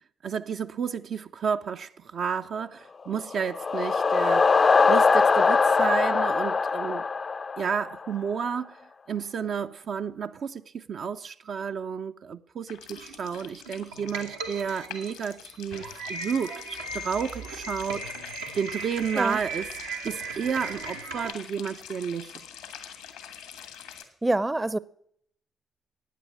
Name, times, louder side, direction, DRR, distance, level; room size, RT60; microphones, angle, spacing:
voice 1, 0.2-4.6 4.9-7.1 7.6-8.8 9.1-18.1 18.5-19.7 20.0-22.3, right 6 dB, 60° right, 0.6 m, -31 dB
sound 1, 3.2-8.1, left 4 dB, 40° left, 0.5 m, -22 dB
sound 2, 12.7-24.0, left 9 dB, 80° left, 1.6 m, -45 dB
sound 3, 12.9-21.3, right 3 dB, 85° right, 1.2 m, -38 dB
voice 2, 24.2-24.8, right 2 dB, 20° right, 0.6 m, -25 dB
15.0 x 9.2 x 7.5 m
hypercardioid pair, 40°, 0 cm